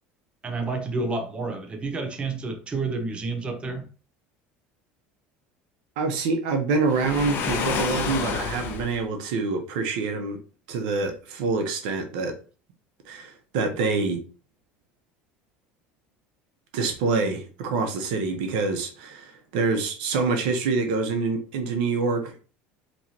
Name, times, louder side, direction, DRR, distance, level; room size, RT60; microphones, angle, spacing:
voice 1, 0.4-3.9, right 3 dB, 25° right, 0.8 m, -29 dB
voice 2, 6.0-10.4 10.7-12.4 13.0-14.2 16.7-22.4, right 4 dB, 85° right, 0.9 m, -26 dB
Waves surf, 6.9-9.0, left 6 dB, 55° left, 0.9 m, -29 dB
4.4 x 3.1 x 2.8 m
supercardioid pair, 115°, 5 cm